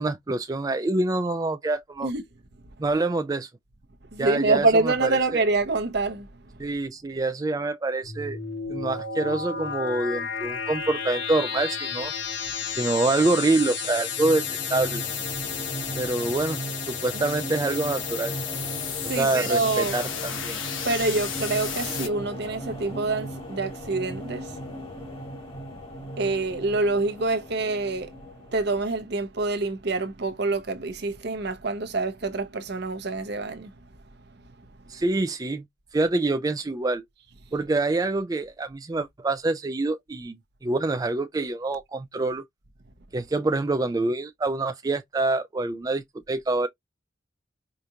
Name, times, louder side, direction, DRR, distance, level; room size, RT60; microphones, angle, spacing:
voice 1, 0.0-2.1 2.8-3.5 4.2-5.4 6.6-8.4 8.7-12.1 12.8-14.4 14.7-15.0 16.0-16.6 16.9-18.3 19.2-20.6 34.9-35.6 35.9-37.0 37.5-42.4 43.1-46.7, right 2 dB, 20° right, 0.3 m, -26 dB
voice 2, 4.1-6.3 19.0-20.0 20.8-24.6 26.2-28.1 28.5-33.7, right 3 dB, 55° right, 0.8 m, -26 dB
sound 1, 8.0-22.1, left 7 dB, 80° left, 1.2 m, -32 dB
sound 2, 13.8-29.1, right 1 dB, 30° left, 1.6 m, -38 dB
4.9 x 2.4 x 2.8 m
head